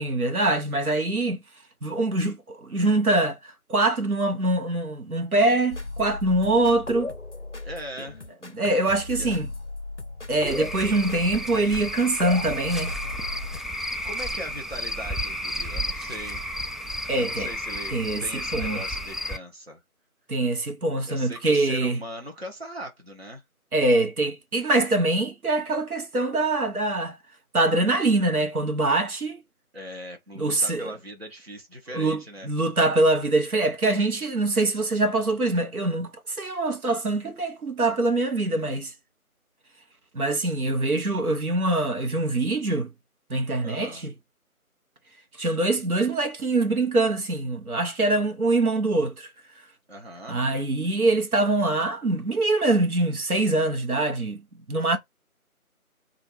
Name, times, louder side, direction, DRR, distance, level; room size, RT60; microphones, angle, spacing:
voice 1, 0.0-1.4 1.8-7.1 8.5-9.5 10.3-12.9 17.1-17.5 17.9-18.8 20.3-22.0 23.7-27.2 27.5-29.4 30.4-30.9 31.9-38.9 40.1-42.9 43.3-44.1 45.4-49.3 50.3-54.4 54.7-55.0, right 2 dB, 75° right, 0.9 m, -24 dB
sound 1, 5.7-13.6, left 2 dB, 50° left, 0.6 m, -36 dB
voice 2, 7.6-8.2 9.2-9.3 14.0-16.5 17.2-19.8 21.1-23.4 29.7-32.5 43.6-44.0 49.9-50.4 54.8-55.0, equal, 45° right, 0.8 m, -39 dB
Cricket / Frog, 10.5-19.4, equal, ahead, 0.3 m, -32 dB
3.1 x 2.4 x 3.3 m
figure-of-eight pair, 175°, 45 cm